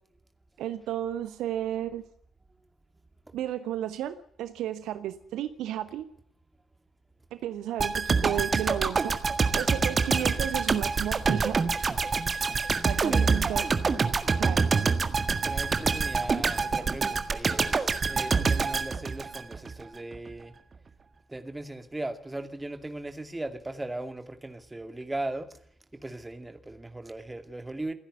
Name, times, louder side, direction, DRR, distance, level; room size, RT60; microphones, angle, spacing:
voice 1, 0.6-2.0 3.3-6.1 7.3-9.2 9.5-11.6 12.9-13.6 14.4-14.6, right 11 dB, 60° right, 1.0 m, -33 dB
sound 1, 7.8-19.8 20.1-20.3, right 4 dB, 35° right, 1.7 m, -26 dB
voice 2, 15.3-20.5 21.3-25.5 25.9-27.9, right 2 dB, 15° right, 2.3 m, -38 dB
28.0 x 10.0 x 9.5 m
figure-of-eight pair, 40°, 0 cm